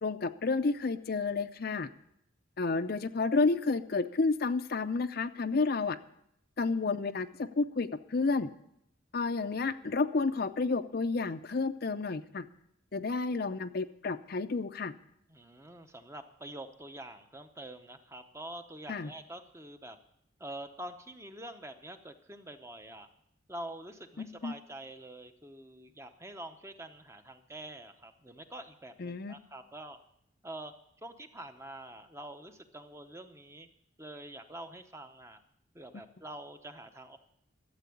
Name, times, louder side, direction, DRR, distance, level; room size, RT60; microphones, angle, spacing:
voice 1, 0.0-1.9 2.6-6.0 6.6-7.3 7.6-8.5 9.1-12.5 12.9-14.9 18.9-19.1 24.2-24.5 29.0-29.4 35.9-36.0, left 3 dB, 50° left, 10 dB, 0.5 m, -30 dB
voice 2, 15.3-20.0 20.4-23.1 23.5-30.0 30.4-33.7 34.0-35.4 35.7-37.2, right 1 dB, 15° right, 7 dB, 0.7 m, -46 dB
13.0 x 7.7 x 8.5 m, 0.74 s
head